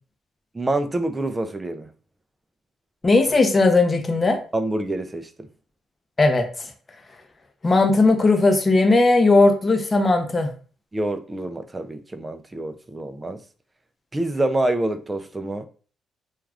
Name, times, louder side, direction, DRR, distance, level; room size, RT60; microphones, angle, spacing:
voice 1, 0.5-1.9 4.5-5.5 10.9-13.4 14.1-15.7, right 1 dB, 20° right, 0.4 m, -26 dB
voice 2, 3.0-4.4 6.2-6.7 7.6-10.5, left 3 dB, 25° left, 0.6 m, -17 dB
2.3 x 2.3 x 3.3 m
cardioid pair, 90°, 0 cm